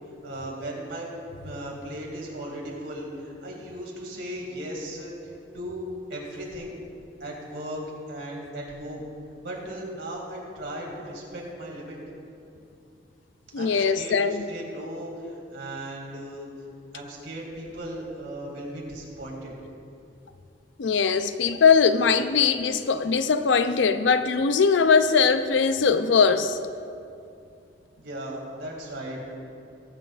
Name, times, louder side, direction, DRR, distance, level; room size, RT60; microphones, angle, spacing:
voice 1, 0.2-1.1 1.4-5.8 6.1-6.7 7.2-7.8 8.1-9.0 9.4-12.0 13.6-16.5 16.9-19.5 28.0-29.2, right 1 dB, 75° right, 2.6 m, -37 dB
voice 2, 13.5-14.4 20.8-26.6, left 5 dB, 85° left, 0.5 m, -21 dB
19.5 x 8.4 x 2.5 m
head